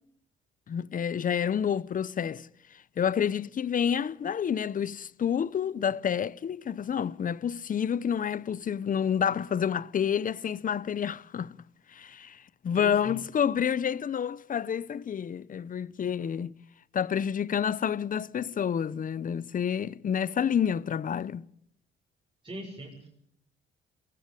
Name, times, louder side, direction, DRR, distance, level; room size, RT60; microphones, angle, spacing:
voice 1, 0.7-2.5 3.0-11.6 11.9-16.5 16.9-21.5, left 8 dB, 45° left, 0.8 m, -29 dB
voice 2, 12.7-13.2 22.4-23.1, right 1 dB, 25° right, 6.6 m, -40 dB
22.5 x 16.0 x 9.9 m
cardioid pair, 90°, 20 cm